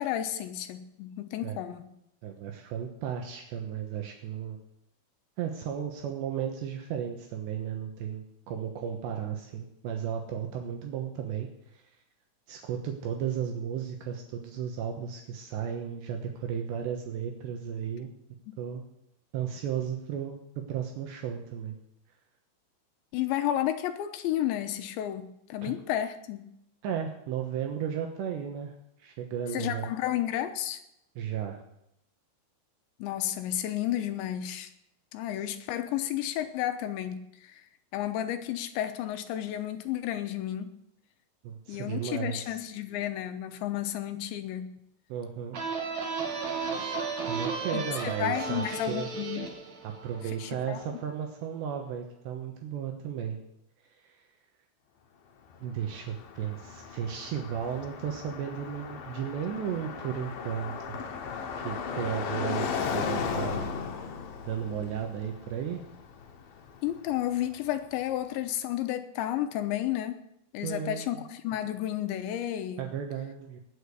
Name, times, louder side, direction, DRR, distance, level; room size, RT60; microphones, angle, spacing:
voice 1, 0.0-1.9 18.5-18.6 23.1-26.4 29.5-30.8 33.0-34.7 35.1-37.6 37.9-40.7 41.7-44.7 47.7-49.5 50.4-50.8 66.8-70.2 70.5-72.9, left 12 dB, 80° left, 9 dB, 3.1 m, -32 dB
voice 2, 2.2-4.6 5.4-11.5 11.7-11.8 12.5-18.1 18.6-18.8 19.3-21.8 25.6-25.7 26.8-29.9 31.2-31.6 41.4-42.6 45.1-45.6 47.3-49.1 49.8-53.4 54.0-54.2 55.6-60.7 61.6-63.7 64.4-65.8 70.6-71.2 72.8-73.6, right 8 dB, 75° right, 3 dB, 3.2 m, -34 dB
sound 1, 45.5-51.0, right 5 dB, 45° right, 2.7 m, -34 dB
Car passing by, 55.5-67.5, left 6 dB, 60° left, 2.7 m, -36 dB
20.0 x 6.6 x 8.3 m, 0.80 s
omnidirectional pair, 5.5 m